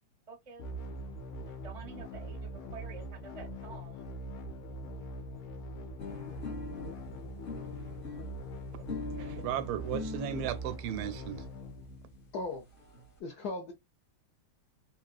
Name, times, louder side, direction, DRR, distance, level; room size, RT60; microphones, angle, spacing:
voice 1, 0.3-0.7 1.5-4.0, right 5 dB, 40° right, 0.4 m, -49 dB
sound 1, 0.6-12.5, equal, 85° left, 1.7 m, -42 dB
sound 2, 6.0-10.6 11.4-11.5 11.8-11.9 12.1-12.2 12.4-13.0, left 4 dB, 45° left, 0.7 m, -42 dB
voice 2, 9.2-11.4, right 10 dB, 85° right, 1.4 m, -35 dB
voice 3, 12.3-12.6 13.2-13.7, left 3 dB, 65° left, 1.0 m, -37 dB
3.7 x 2.4 x 2.3 m
omnidirectional pair, 2.3 m